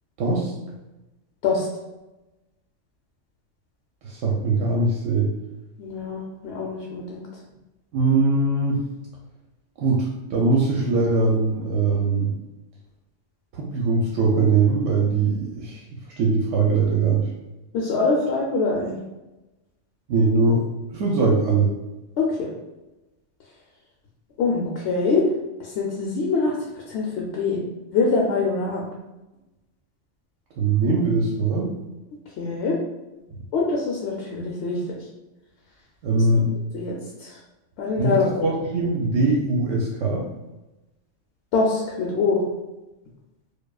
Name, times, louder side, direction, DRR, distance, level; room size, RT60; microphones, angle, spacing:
voice 1, 0.2-0.5 4.0-5.3 7.9-8.8 9.8-12.3 13.5-15.8 16.2-17.3 20.1-20.6 20.9-21.7 30.6-31.7 36.0-36.5 38.0-40.3, right 3 dB, 80° right, -2 dB, 0.9 m, -21 dB
voice 2, 5.8-7.3 17.7-19.0 22.2-22.5 24.4-25.3 25.6-26.6 26.9-27.6 27.9-28.8 32.4-32.8 33.5-34.8 36.7-36.9 37.2-37.4 37.8-38.5 41.5-42.4, left 4 dB, 70° left, -2 dB, 0.8 m, -24 dB
4.7 x 2.4 x 2.3 m, 1.0 s
omnidirectional pair, 1.3 m